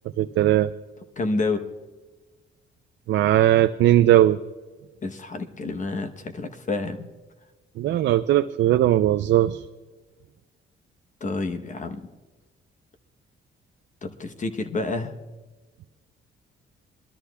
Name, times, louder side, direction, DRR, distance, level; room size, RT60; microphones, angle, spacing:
voice 1, 0.2-0.7 3.1-4.4 7.8-9.6, right 13 dB, 70° right, 8 dB, 0.4 m, -19 dB
voice 2, 1.2-1.6 5.0-7.1 11.2-12.1 14.0-15.2, left 3 dB, 40° left, 8 dB, 1.0 m, -29 dB
23.5 x 13.0 x 2.3 m, 1.2 s
cardioid pair, 90°, 20 cm